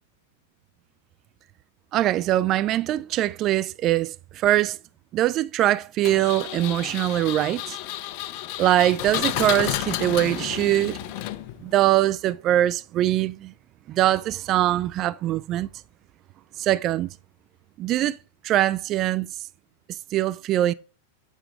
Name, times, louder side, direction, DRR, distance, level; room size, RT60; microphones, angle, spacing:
voice 1, 1.9-4.8 5.1-7.8 8.6-11.0 11.6-13.5 13.9-15.7 16.6-17.1 17.8-18.2 18.4-19.3 20.1-20.7, right 13 dB, 40° right, 0.3 m, -22 dB
Engine, 6.0-11.7, left 14 dB, 50° left, 0.6 m, -31 dB
8.0 x 4.3 x 5.1 m
hypercardioid pair, 100°, 0 cm